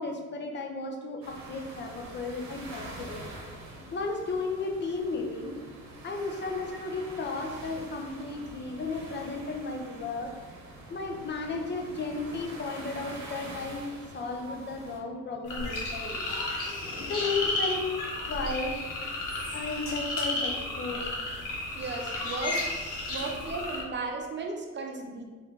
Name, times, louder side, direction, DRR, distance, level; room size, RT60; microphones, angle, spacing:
voice 1, 0.0-3.3 3.7-5.5 6.0-10.3 10.9-16.3 16.7-17.9 18.3-18.8 19.5-21.1, left 3 dB, 35° left, 3 dB, 0.6 m, -34 dB
sound 1, 1.2-15.0, right 2 dB, 65° right, 0.9 m, -45 dB
sound 2, 15.5-23.8, left 2 dB, 85° left, 1.0 m, -33 dB
voice 2, 21.8-22.6 23.1-25.2, right 3 dB, 40° right, 2 dB, 0.6 m, -35 dB
3.5 x 2.6 x 3.6 m, 1.4 s
cardioid pair, 90°, 30 cm